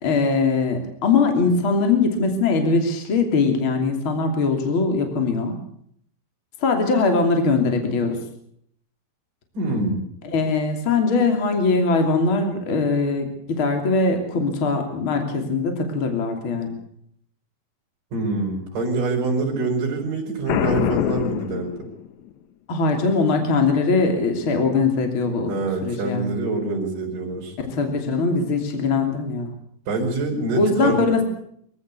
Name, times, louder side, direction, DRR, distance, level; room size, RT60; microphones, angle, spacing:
voice 1, 0.0-5.6 6.6-8.2 10.2-16.8 22.7-25.5 25.8-26.4 27.6-29.5 30.5-31.2, left 4 dB, 35° left, 5 dB, 3.4 m, -21 dB
voice 2, 9.5-10.0 18.1-21.7 25.5-27.6 29.9-31.0, right 3 dB, 55° right, -2 dB, 6.3 m, -25 dB
Boom, 20.5-22.3, left 10 dB, 70° left, 1.9 m, -24 dB
24.0 x 15.5 x 8.3 m, 0.67 s
omnidirectional pair, 4.5 m